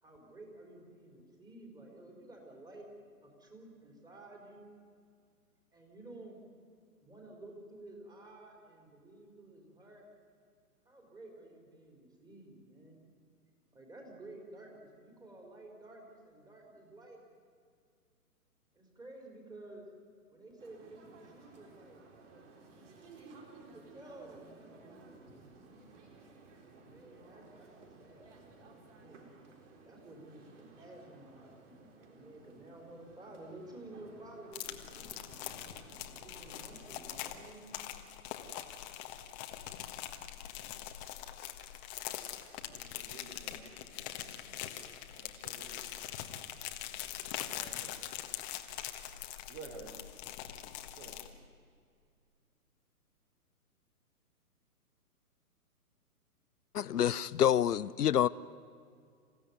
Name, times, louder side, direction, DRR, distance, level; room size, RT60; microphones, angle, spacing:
voice 1, 0.0-2.9 3.2-4.7 5.7-6.4 7.0-10.0 10.9-13.0 13.7-17.2 18.7-19.9 20.3-22.0 22.7-25.5 26.8-29.2 29.8-35.4 36.0-37.8, right 2 dB, 10° right, 4.2 m, -53 dB
sound 1, 20.6-37.4, right 3 dB, 50° right, 4.0 m, -57 dB
sound 2, 34.5-51.3, left 12 dB, 30° left, 1.5 m, -43 dB
voice 2, 42.6-43.8 45.1-45.9 47.6-48.0 49.5-50.0 51.0-51.2, right 4 dB, 35° right, 4.2 m, -51 dB
voice 3, 56.7-58.3, left 10 dB, 75° left, 0.7 m, -27 dB
28.0 x 15.5 x 9.5 m
hypercardioid pair, 135°, 46 cm